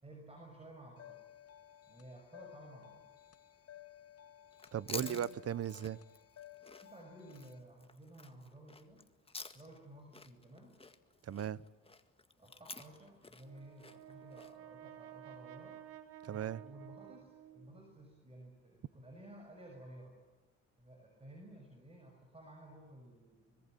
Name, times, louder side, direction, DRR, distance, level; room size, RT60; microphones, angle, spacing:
voice 1, 0.0-1.3 1.8-3.2 4.9-5.2 6.8-9.1 9.5-10.8 12.4-15.8 16.3-20.2 20.8-23.7, right 1 dB, 20° right, 2 dB, 6.6 m, -55 dB
sound 1, 1.0-7.6, left 12 dB, 50° left, 1.4 m, -57 dB
Chewing mastication, 4.5-9.9 10.1-14.5, left 3 dB, 20° left, 1.9 m, -50 dB
voice 2, 4.7-6.0 11.2-11.6 16.2-16.6, right 10 dB, 55° right, 20 dB, 0.9 m, -37 dB
Brass instrument, 13.4-17.8, right 12 dB, 90° right, 3.6 m, -53 dB
24.5 x 23.0 x 9.2 m, 1.1 s
cardioid pair, 90°, 30 cm